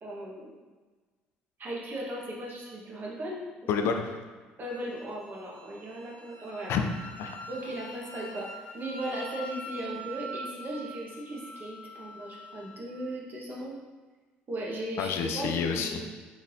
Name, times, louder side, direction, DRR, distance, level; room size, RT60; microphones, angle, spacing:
voice 1, 0.0-0.6 1.6-3.7 4.6-6.7 7.5-13.8 14.5-16.1, right 1 dB, 40° right, -3 dB, 1.4 m, -37 dB
voice 2, 3.7-4.1 6.7-7.4 15.0-16.0, left 6 dB, 65° left, 4 dB, 0.5 m, -29 dB
Wind instrument woodwind instrument, 4.7-12.8, right 1 dB, 40° left, 0.9 m, -45 dB
4.8 x 3.9 x 2.7 m, 1.3 s
hypercardioid pair, 60°, 5 cm